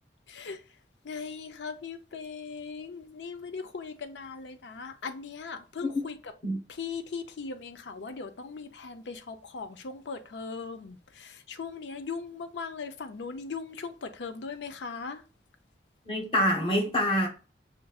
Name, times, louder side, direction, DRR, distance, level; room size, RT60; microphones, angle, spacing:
voice 1, 0.3-0.6 1.0-6.3 6.7-15.2, left 5 dB, 85° left, 0.5 m, -39 dB
voice 2, 16.1-17.3, equal, 30° left, 1.0 m, -26 dB
5.8 x 2.6 x 2.3 m
head